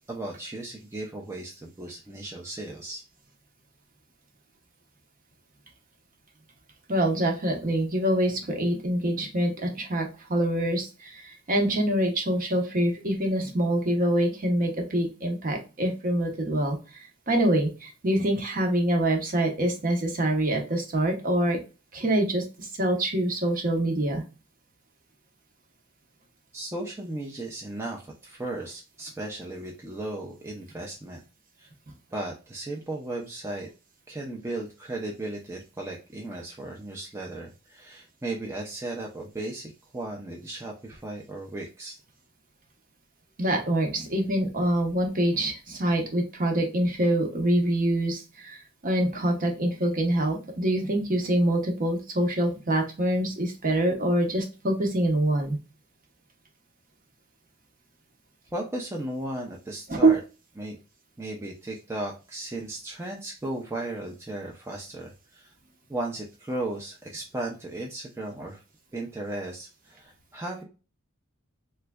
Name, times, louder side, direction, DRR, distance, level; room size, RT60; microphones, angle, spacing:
voice 1, 0.1-3.0 26.5-31.2 31.6-31.7 32.1-33.7 34.1-42.0 58.5-60.2 60.6-60.8 61.2-65.5 65.9-68.6 68.9-70.6, right 2 dB, 10° right, -1 dB, 0.5 m, -35 dB
voice 2, 6.9-16.8 17.3-21.6 21.9-24.2 43.4-48.6 48.8-55.6 59.9-60.2, right 1 dB, 40° right, 3 dB, 0.8 m, -25 dB
3.4 x 3.1 x 2.2 m, 0.31 s
head